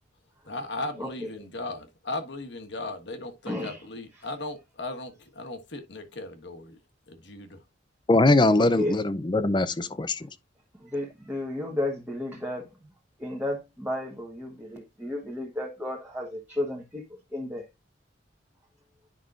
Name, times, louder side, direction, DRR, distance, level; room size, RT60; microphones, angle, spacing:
voice 1, 0.4-6.8 7.1-7.6, left 2 dB, 65° left, 1.4 m, -37 dB
voice 2, 3.5-3.8 8.6-9.0 10.8-12.8 13.2-17.7, left 1 dB, 10° right, 1.3 m, -33 dB
voice 3, 8.1-10.3, left 2 dB, 25° left, 0.5 m, -22 dB
10.0 x 5.4 x 2.4 m
head